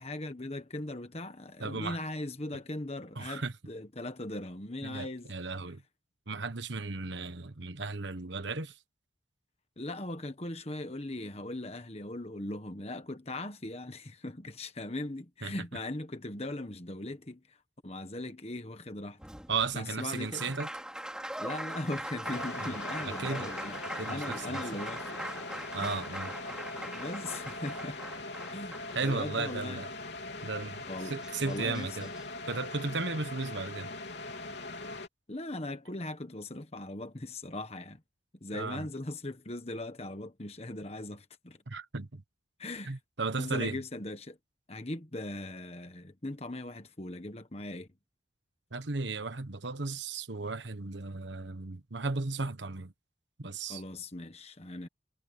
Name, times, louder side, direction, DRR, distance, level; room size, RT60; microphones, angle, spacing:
voice 1, 0.0-5.3 9.8-17.4 17.8-19.2 19.7-20.5 21.4-23.8 24.1-25.2 25.8-26.0 26.6-28.0 28.5-29.8 30.9-31.2 31.4-32.1 35.3-38.0 38.4-41.6 42.6-42.9 43.4-44.4 44.7-47.9 53.7-54.9, left 1 dB, 30° left, 1.4 m, -39 dB
voice 2, 1.6-2.0 3.1-3.5 4.8-5.8 6.3-8.8 15.4-15.5 19.5-20.7 22.6-22.7 23.0-23.5 24.0-24.8 25.7-26.3 28.9-29.9 30.4-32.1 32.5-33.9 38.5-38.9 41.7-42.2 42.8-43.8 48.7-52.9 53.4-53.8, right 3 dB, 65° right, 1.3 m, -35 dB
Applause, 19.2-29.5 30.8-30.9 31.2-32.2, right 1 dB, 5° right, 5.2 m, -41 dB
sound 1, 22.2-35.1, left 2 dB, 60° left, 3.8 m, -41 dB
head